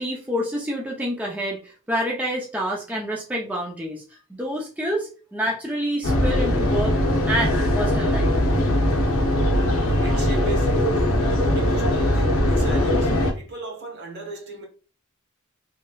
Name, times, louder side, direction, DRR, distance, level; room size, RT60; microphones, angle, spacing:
voice 1, 0.0-1.6 1.9-4.0 4.4-7.0 7.2-8.3, equal, 5° right, 0.5 m, -27 dB
sound 1, 6.0-13.3, left 1 dB, 70° left, 0.7 m, -20 dB
voice 2, 10.0-10.9 11.5-14.7, right 3 dB, 55° right, 1.0 m, -35 dB
3.1 x 2.7 x 2.3 m
head